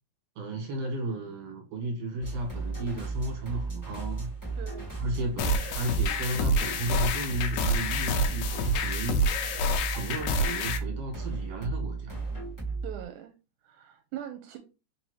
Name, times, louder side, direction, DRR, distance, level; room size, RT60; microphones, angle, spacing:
voice 1, 0.4-4.3 5.0-9.2 9.9-12.2, right 1 dB, 60° right, 2.4 m, -33 dB
sound 1, 2.2-13.0, right 3 dB, 25° left, 0.4 m, -35 dB
voice 2, 4.6-4.9 12.8-13.3 13.6-14.6, right 11 dB, 85° right, 2.0 m, -41 dB
sound 2, 5.4-10.8, equal, 80° left, 1.9 m, -28 dB
4.8 x 2.8 x 3.1 m
omnidirectional pair, 3.5 m